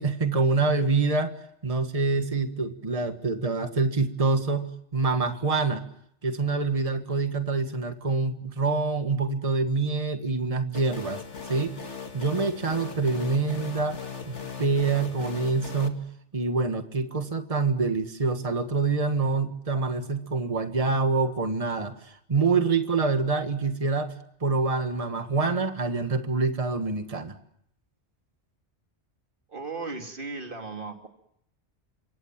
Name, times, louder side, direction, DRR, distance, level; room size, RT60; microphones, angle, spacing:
voice 1, 0.0-1.3 1.6-5.8 6.2-11.2 11.5-11.8 12.1-14.0 14.2-16.0 16.3-24.1 24.4-27.3, right 4 dB, 30° right, 8 dB, 1.7 m, -26 dB
sound 1, 10.7-15.9, left 6 dB, 90° left, 2.5 m, -38 dB
voice 2, 29.5-31.1, right 3 dB, 50° right, 4 dB, 3.0 m, -36 dB
27.0 x 23.5 x 7.5 m, 0.73 s
omnidirectional pair, 1.2 m